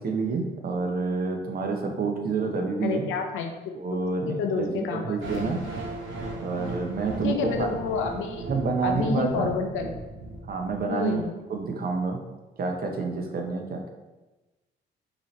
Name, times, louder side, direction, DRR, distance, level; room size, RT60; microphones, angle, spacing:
voice 1, 0.0-3.0 3.7-5.6 6.4-7.8 8.5-9.5 10.5-11.2 11.5-12.2 12.6-13.9, right 4 dB, 50° right, 3 dB, 0.8 m, -28 dB
voice 2, 2.8-3.7 4.4-5.2 7.2-8.4 8.8-9.9 10.9-11.3, left 5 dB, 85° left, 4 dB, 0.6 m, -29 dB
sound 1, 5.2-11.2, right 2 dB, 75° right, 1.1 m, -37 dB
5.2 x 2.9 x 3.2 m, 1.1 s
cardioid pair, 90°, 20 cm